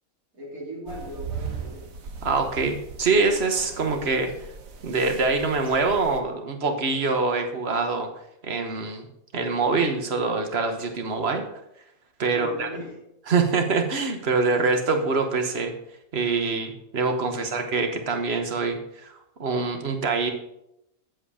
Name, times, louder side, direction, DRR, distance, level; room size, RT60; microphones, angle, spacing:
voice 1, 0.3-1.9 12.3-13.0 17.3-17.7, right 1 dB, 90° right, -4 dB, 3.3 m, -39 dB
sound 1, 0.9-6.2, right 5 dB, 75° right, 1.4 m, -39 dB
voice 2, 2.2-4.3 4.8-8.1 8.4-9.1 9.3-11.4 12.2-12.7 13.3-15.7 16.1-20.3, right 4 dB, 50° right, 5 dB, 1.3 m, -24 dB
7.9 x 7.8 x 4.9 m, 0.82 s
omnidirectional pair, 1.5 m